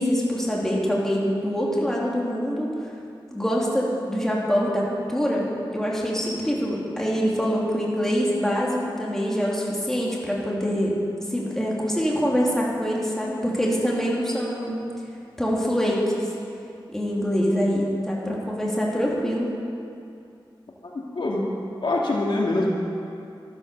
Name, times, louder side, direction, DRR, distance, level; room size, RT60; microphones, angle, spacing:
voice 1, 0.0-2.7 3.3-11.0 11.3-14.8 15.4-16.3 16.9-19.5, equal, 5° left, -5 dB, 2.9 m, -24 dB
voice 2, 20.9-21.5 21.8-22.7, left 2 dB, 65° left, -2 dB, 2.0 m, -24 dB
13.0 x 12.0 x 6.8 m, 2.5 s
wide cardioid pair, 105°, 9 cm